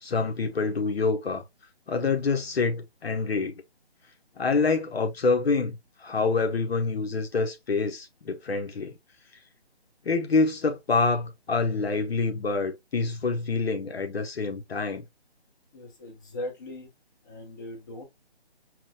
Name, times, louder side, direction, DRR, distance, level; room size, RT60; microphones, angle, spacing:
voice 1, 0.0-1.4 1.9-3.6 4.4-8.9 10.0-15.0, left 4 dB, 65° left, 0.8 m, -26 dB
voice 2, 15.7-16.9 17.2-18.0, left 1 dB, 20° left, 0.8 m, -39 dB
5.9 x 2.1 x 2.7 m
figure-of-eight pair, 155°, 33 cm